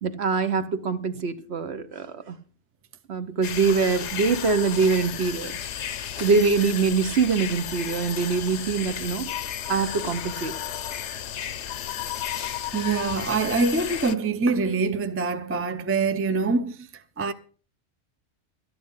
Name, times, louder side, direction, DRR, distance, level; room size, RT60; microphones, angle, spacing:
voice 1, 0.0-2.4 3.1-5.6 6.2-9.3 9.7-10.5, right 5 dB, 60° right, 1.2 m, -24 dB
sound 1, 3.4-14.2, left 10 dB, 70° left, 1.0 m, -33 dB
voice 2, 12.7-16.9 17.2-17.3, right 4 dB, 15° right, 0.5 m, -24 dB
13.0 x 9.9 x 5.5 m
omnidirectional pair, 1.3 m